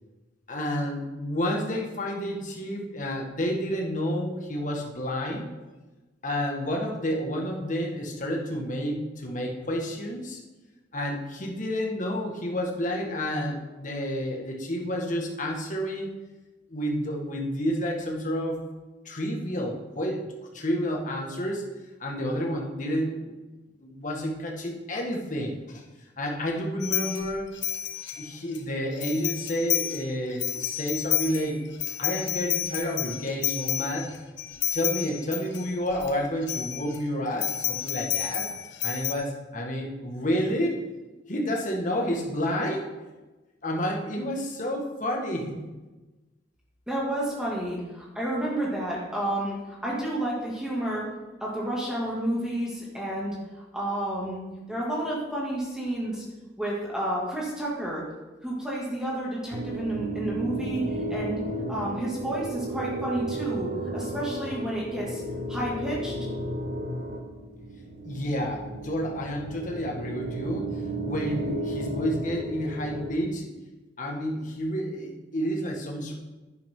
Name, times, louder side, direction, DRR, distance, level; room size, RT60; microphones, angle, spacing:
voice 1, 0.5-5.5 6.2-10.4 10.9-16.1 16.7-18.6 19.1-20.3 20.5-21.7 22.0-23.4 23.8-25.8 26.2-27.5 28.2-31.6 32.0-34.1 34.7-38.5 38.8-40.8 41.3-42.9 43.6-45.6 68.0-73.5 74.0-76.1, equal, 45° left, 0 dB, 1.9 m, -30 dB
sound 1, 26.8-28.6 29.0-30.0 30.3-36.1 36.4-37.0 37.4-39.1, left 12 dB, 80° left, 1.3 m, -30 dB
voice 2, 46.9-51.1 51.4-53.4 53.7-54.4 54.7-56.2 56.6-58.0 58.4-61.4 61.7-65.2 65.5-66.1, right 1 dB, 5° right, -5 dB, 2.6 m, -30 dB
sound 2, 59.5-73.1, right 1 dB, 60° right, 1.2 m, -34 dB
11.0 x 10.5 x 3.9 m, 1.1 s
head